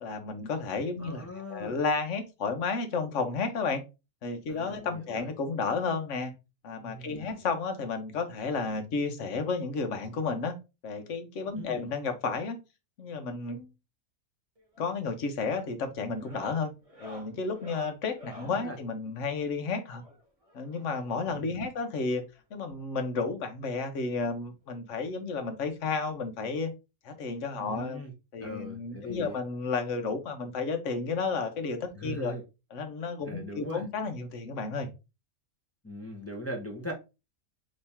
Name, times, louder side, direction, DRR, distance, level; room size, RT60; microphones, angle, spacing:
voice 1, 0.0-3.8 4.2-6.3 6.6-10.5 10.8-12.6 13.0-13.7 14.8-16.7 17.0-20.0 20.5-22.2 22.5-26.7 27.0-28.0 28.3-32.3 32.7-34.9, left 4 dB, 60° left, 7 dB, 1.1 m, -32 dB
voice 2, 1.0-1.8 4.5-5.2 6.8-7.4 11.6-11.9 18.4-18.8 21.4-21.5 27.6-28.1 28.4-29.4 31.9-32.4 33.3-33.8 35.8-36.9, equal, 15° left, 1 dB, 0.6 m, -40 dB
sound 1, 14.6-14.9 15.2-15.5 16.1-18.6 19.9-21.3 22.4-22.5 22.7-22.8 23.2-23.3 24.6-24.7 26.1-26.2, equal, 25° right, 1.9 m, -49 dB
4.2 x 3.2 x 3.5 m, 0.27 s
omnidirectional pair, 1.5 m